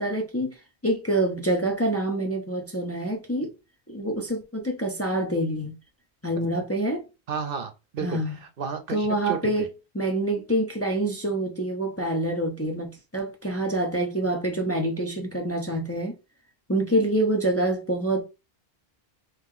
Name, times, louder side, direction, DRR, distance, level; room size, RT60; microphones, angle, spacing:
voice 1, 0.0-3.5 3.9-5.7 6.2-7.1 8.0-8.4 8.9-16.1 16.7-18.2, right 1 dB, 15° left, 0.6 m, -26 dB
voice 2, 7.3-9.7, right 6 dB, 65° right, 0.8 m, -33 dB
2.9 x 2.9 x 3.7 m
omnidirectional pair, 1.1 m